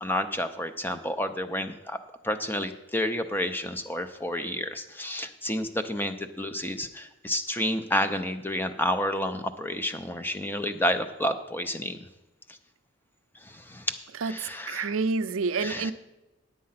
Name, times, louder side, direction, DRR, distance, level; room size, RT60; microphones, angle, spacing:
voice 1, 0.0-2.0 2.2-12.0 13.4-14.0 14.2-14.9 15.6-15.9, left 1 dB, 10° left, 8 dB, 0.6 m, -30 dB
voice 2, 14.1-15.9, right 4 dB, 70° right, 13 dB, 0.5 m, -29 dB
9.4 x 8.5 x 5.7 m, 1.0 s
head